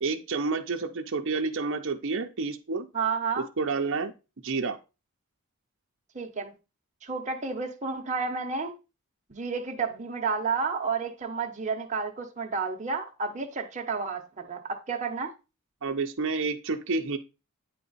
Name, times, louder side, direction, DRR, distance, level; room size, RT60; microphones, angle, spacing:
voice 1, 0.0-2.9 3.4-4.1 4.4-4.8 15.8-17.2, right 4 dB, 60° right, 0.7 m, -29 dB
voice 2, 2.9-3.5 6.1-6.5 7.0-8.7 9.3-15.3, right 5 dB, 35° right, 0.9 m, -31 dB
8.7 x 4.1 x 4.1 m
head